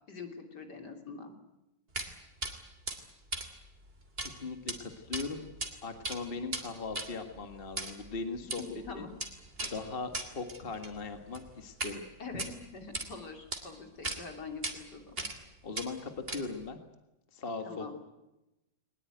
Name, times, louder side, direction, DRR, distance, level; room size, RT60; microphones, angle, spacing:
voice 1, 0.1-1.3 8.6-9.1 12.2-15.3 17.6-17.9, left 4 dB, 65° left, 4 dB, 3.8 m, -44 dB
sound 1, 1.9-2.1 2.4-2.5 2.9-4.3 4.6-4.8 5.1-5.7 6.0-12.0 12.3-13.1 13.5-13.6 14.0-14.2 14.6-14.7 15.2-15.5 15.7-16.7, right 2 dB, 30° right, 3.1 m, -38 dB
voice 2, 4.2-5.5 5.8-8.6 8.9-9.1 9.6-12.0 15.6-16.8 17.3-17.9, left 4 dB, 30° left, 6 dB, 1.9 m, -39 dB
22.0 x 20.5 x 9.3 m, 0.95 s
omnidirectional pair, 1.9 m